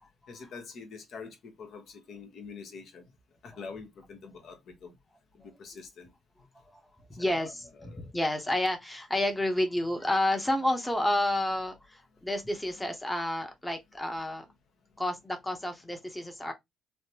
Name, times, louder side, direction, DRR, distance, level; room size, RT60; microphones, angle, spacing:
voice 1, 0.3-3.0 3.4-4.9 5.3-6.1 7.2-7.4 7.8-8.1 12.8-12.9, left 5 dB, 70° left, 1.0 m, -45 dB
voice 2, 7.1-14.5 15.0-16.5, left 1 dB, 10° left, 0.8 m, -30 dB
3.2 x 2.1 x 2.8 m
cardioid pair, 90°, 0 cm